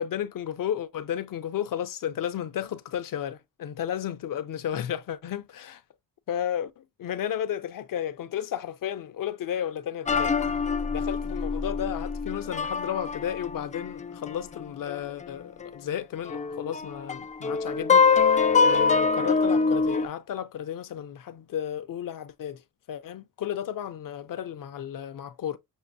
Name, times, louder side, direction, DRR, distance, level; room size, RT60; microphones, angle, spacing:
voice 1, 0.0-5.8 6.3-10.4 10.8-25.6, left 10 dB, 60° left, 0.6 m, -33 dB
sound 1, 10.1-15.2 15.6-15.7 16.3-20.1, left 5 dB, 20° left, 0.3 m, -24 dB
6.4 x 2.5 x 2.7 m
cardioid pair, 105°, 37 cm